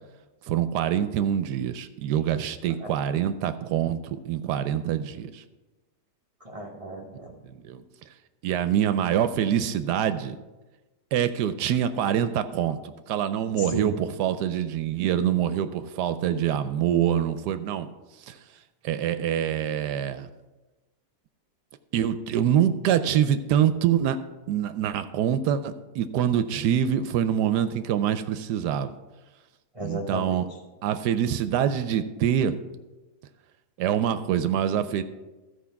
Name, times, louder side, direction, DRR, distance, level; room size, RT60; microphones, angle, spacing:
voice 1, 0.5-5.4 7.4-7.8 8.4-10.4 11.1-17.9 18.3-18.4 18.8-20.3 21.9-24.2 24.5-28.9 29.8-30.5 30.8-32.6 33.8-35.0, right 10 dB, 75° right, 11 dB, 1.1 m, -25 dB
voice 2, 6.4-7.4 13.5-14.0 29.7-30.4, right 1 dB, 30° right, 0 dB, 0.6 m, -34 dB
13.5 x 4.8 x 5.8 m, 1.1 s
omnidirectional pair, 1.8 m